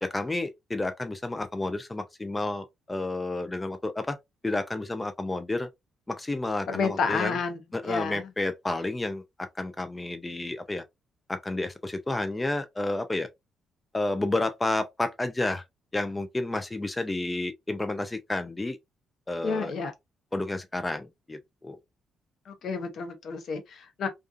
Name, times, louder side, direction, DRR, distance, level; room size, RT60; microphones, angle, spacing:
voice 1, 0.0-4.2 4.4-5.7 6.1-7.4 7.7-10.8 11.3-13.3 13.9-15.6 15.9-18.8 19.3-19.7 20.3-21.8, left 2 dB, 15° left, 0.3 m, -31 dB
voice 2, 6.7-8.2 19.4-19.9 22.5-24.1, left 5 dB, 65° left, 0.7 m, -30 dB
2.4 x 2.3 x 2.4 m
cardioid pair, 90°, 0 cm